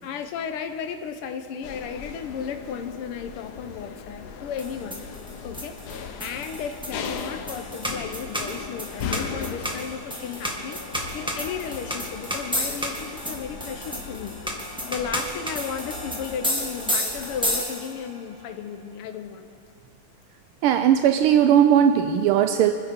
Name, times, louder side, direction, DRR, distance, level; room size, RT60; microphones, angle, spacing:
voice 1, 0.0-5.1 5.4-10.8 11.1-14.4 14.9-19.5, left 7 dB, 85° left, 7 dB, 1.7 m, -34 dB
sound 1, 1.6-17.6, left 6 dB, 60° left, 1.2 m, -38 dB
sound 2, 4.6-18.1, equal, ahead, 1.5 m, -32 dB
voice 2, 20.6-22.7, right 9 dB, 85° right, 8 dB, 1.5 m, -18 dB
27.5 x 10.5 x 4.4 m, 2.2 s
omnidirectional pair, 2.4 m